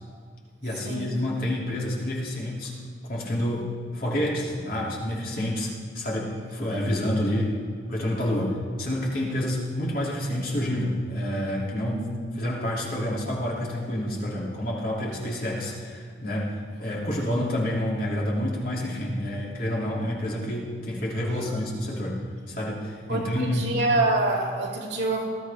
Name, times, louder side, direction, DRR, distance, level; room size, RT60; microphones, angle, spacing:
voice 1, 0.6-2.7 3.1-3.7 3.9-7.5 7.9-12.1 12.4-22.2 22.5-23.7, left 1 dB, 50° left, -4 dB, 2.9 m, -28 dB
voice 2, 23.1-25.2, right 2 dB, 65° right, -2 dB, 2.4 m, -26 dB
20.0 x 12.5 x 3.6 m, 2.1 s
head